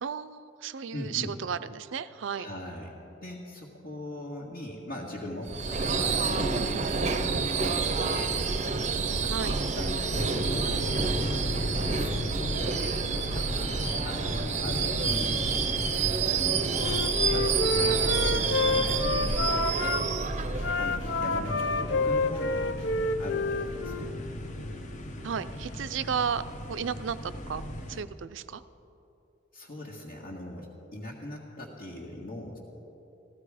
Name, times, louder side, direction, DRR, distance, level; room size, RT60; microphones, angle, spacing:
voice 1, 0.0-2.5 6.5-6.9 9.3-9.5 25.2-26.4 26.7-27.6 27.9-28.6, right 7 dB, 80° right, 14 dB, 0.5 m, -33 dB
voice 2, 0.9-1.3 2.3-2.9 3.2-8.4 9.2-10.9 11.9-13.8 14.0-15.5 16.3-17.0 17.3-20.0 20.8-22.7 23.2-24.1 29.5-32.6, left 1 dB, 60° left, -6 dB, 1.7 m, -40 dB
Subway metro underground / Screech, 5.5-21.4, right 4 dB, 40° right, 0.6 m, -28 dB
sound 1, 10.1-28.0, left 1 dB, 40° left, 0.9 m, -36 dB
Wind instrument woodwind instrument, 16.7-20.0 20.6-24.1, left 2 dB, 75° left, 0.6 m, -29 dB
14.5 x 14.5 x 4.9 m, 2.9 s
head